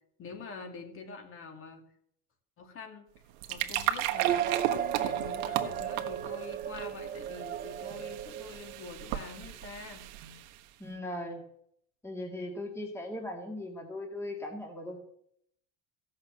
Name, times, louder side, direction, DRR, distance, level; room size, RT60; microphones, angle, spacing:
voice 1, 0.2-1.8 2.6-3.1 3.5-10.1, left 4 dB, 40° left, 5 dB, 2.4 m, -45 dB
sound 1, 3.1-10.7, right 13 dB, 90° right, 1.3 m, -36 dB
sound 2, 4.2-9.0, right 10 dB, 30° right, 0.5 m, -34 dB
voice 2, 10.8-11.4 12.0-15.0, left 1 dB, 5° left, 1 dB, 1.9 m, -38 dB
15.5 x 6.5 x 7.5 m, 0.70 s
cardioid pair, 140°, 34 cm